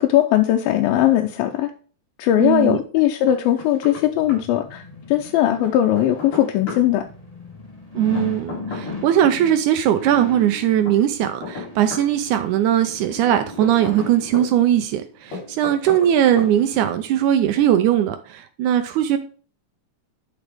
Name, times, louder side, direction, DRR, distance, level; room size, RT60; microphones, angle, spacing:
voice 1, 0.0-1.7 2.2-7.0, left 12 dB, 90° left, 2.5 m, -19 dB
voice 2, 2.4-2.8 8.0-19.2, right 11 dB, 80° right, 1.7 m, -19 dB
Knock, 3.3-4.0 4.3-4.4 5.6-6.8 8.2-9.4 10.9-12.1 13.3-14.5 15.3-16.1 16.4-16.5, left 3 dB, 65° left, 4.9 m, -34 dB
sound 1, 3.5-17.4 17.8-17.9, left 3 dB, 35° left, 0.6 m, -38 dB
11.0 x 4.9 x 3.5 m
omnidirectional pair, 4.1 m